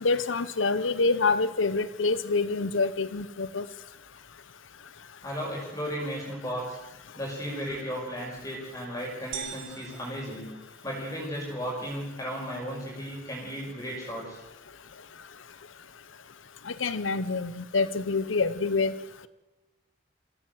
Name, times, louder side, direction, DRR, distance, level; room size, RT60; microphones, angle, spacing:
voice 1, 0.0-3.7 16.7-19.3, left 3 dB, 80° left, 15 dB, 0.9 m, -27 dB
voice 2, 5.2-6.8 7.2-10.5 10.8-14.4, equal, 15° left, -2 dB, 5.4 m, -35 dB
sound 1, 9.3-11.3, right 8 dB, 80° right, 2.0 m, -42 dB
25.0 x 16.0 x 7.8 m, 1.1 s
head